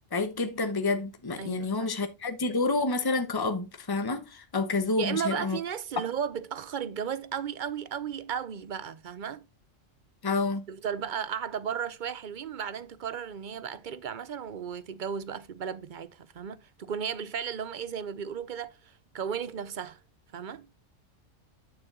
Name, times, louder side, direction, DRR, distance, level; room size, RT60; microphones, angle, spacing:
voice 1, 0.1-5.6 10.2-10.6, left 3 dB, 20° left, 1.0 m, -29 dB
voice 2, 1.4-1.9 5.0-9.5 10.7-20.0 20.3-20.7, right 8 dB, 45° right, 0.7 m, -35 dB
9.1 x 7.0 x 3.7 m
omnidirectional pair, 1.3 m